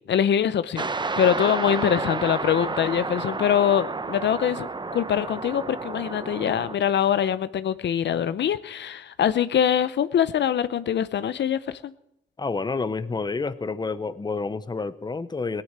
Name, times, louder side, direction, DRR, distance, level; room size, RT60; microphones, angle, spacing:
voice 1, 0.1-11.9, left 9 dB, 70° left, 14 dB, 0.7 m, -24 dB
sound 1, 0.8-6.8, right 3 dB, 25° right, 0.7 m, -31 dB
voice 2, 12.4-15.6, left 4 dB, 25° left, 14 dB, 0.8 m, -29 dB
17.5 x 9.8 x 7.3 m, 0.81 s
cardioid pair, 85°, 19 cm